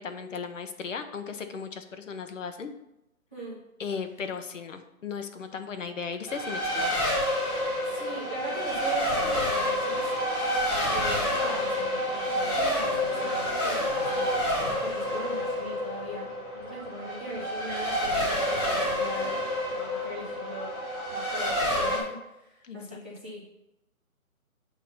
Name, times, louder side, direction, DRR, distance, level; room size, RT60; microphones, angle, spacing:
voice 1, 0.0-2.7 3.8-7.0 22.6-23.0, left 6 dB, 60° left, 8 dB, 0.9 m, -36 dB
Race car auto racing, 6.3-22.0, left 1 dB, 25° left, 2.5 m, -28 dB
voice 2, 7.8-10.2 10.7-14.3 14.8-16.3 16.5-19.4 19.7-20.7 21.1-23.7, right 1 dB, 10° right, -10 dB, 0.6 m, -39 dB
8.2 x 2.9 x 5.6 m, 0.90 s
hypercardioid pair, 160°, 43 cm